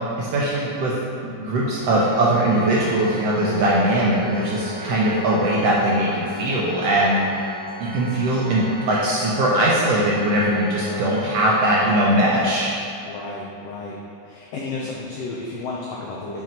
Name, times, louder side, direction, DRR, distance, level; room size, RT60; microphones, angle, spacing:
voice 1, 0.2-0.9 1.2-7.4 7.8-12.7, right 1 dB, 90° right, -5 dB, 1.4 m, -20 dB
Organ, 1.8-12.7, equal, 70° right, 2.1 m, -36 dB
voice 2, 13.1-13.9 14.3-16.4, left 3 dB, 80° left, -4 dB, 1.4 m, -32 dB
5.9 x 5.9 x 4.4 m, 2.7 s
omnidirectional pair, 3.8 m